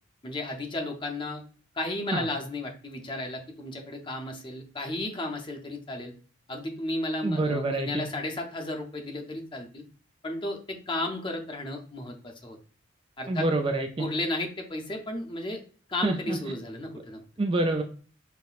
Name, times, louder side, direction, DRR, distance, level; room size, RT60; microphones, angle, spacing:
voice 1, 0.2-1.4 1.7-6.1 6.5-9.8 10.2-12.6 13.2-13.5 14.0-15.6 15.9-17.2, left 1 dB, 25° left, 2 dB, 0.6 m, -33 dB
voice 2, 7.2-8.1 13.3-14.1 16.0-16.4 17.4-17.8, right 2 dB, 25° right, 4 dB, 0.3 m, -27 dB
5.5 x 2.1 x 2.4 m, 0.40 s
head